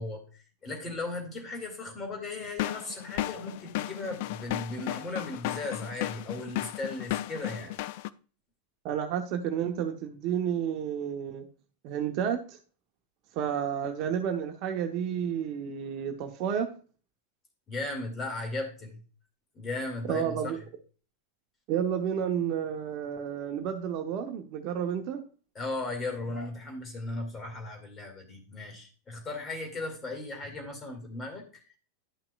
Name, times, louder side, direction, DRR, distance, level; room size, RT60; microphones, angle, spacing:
voice 1, 0.0-7.7 17.7-19.0 19.6-20.5 25.5-31.4, left 2 dB, 20° left, 3 dB, 2.3 m, -36 dB
sound 1, 2.4-8.1, left 15 dB, 50° left, 0.3 m, -34 dB
voice 2, 8.8-11.4 11.8-12.6 13.4-16.7 20.0-20.6 21.7-25.2, right 8 dB, 40° right, 5 dB, 0.9 m, -31 dB
11.0 x 5.8 x 2.4 m, 0.38 s
figure-of-eight pair, 90°, 0 cm